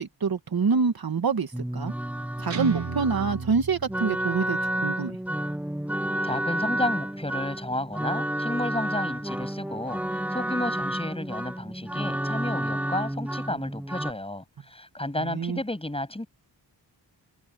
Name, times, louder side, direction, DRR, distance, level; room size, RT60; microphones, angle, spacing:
voice 1, 0.0-1.9 2.4-5.2 15.2-15.6, right 5 dB, 55° right, 1.8 m, -26 dB
sound 1, 1.5-14.1, right 1 dB, 5° right, 0.7 m, -31 dB
Guitar, 2.5-4.5, right 7 dB, 80° right, 3.2 m, -34 dB
voice 2, 6.2-16.3, left 1 dB, 15° left, 7.8 m, -32 dB
wide cardioid pair, 125°, 42 cm